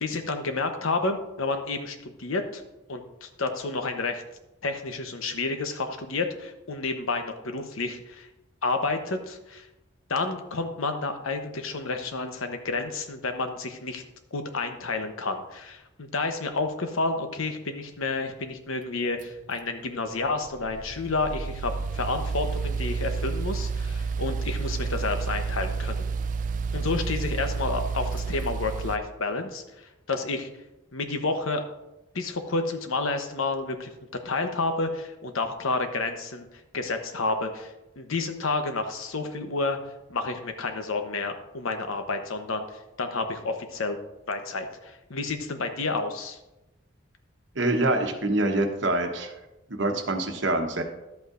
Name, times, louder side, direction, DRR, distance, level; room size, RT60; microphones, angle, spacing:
voice 1, 0.0-2.6 2.9-4.2 4.6-8.3 8.6-9.7 10.1-14.0 14.3-26.1 26.7-29.6 30.1-30.5 30.9-31.6 32.1-33.9 34.2-36.5 36.7-39.8 40.1-44.0 44.3-46.4, left 3 dB, 90° left, 6 dB, 1.0 m, -30 dB
sound 1, 19.2-29.0, right 4 dB, 40° right, 0.4 m, -30 dB
voice 2, 47.5-49.3 49.7-50.8, right 2 dB, 60° right, 5 dB, 1.0 m, -25 dB
11.5 x 8.1 x 2.6 m, 0.95 s
head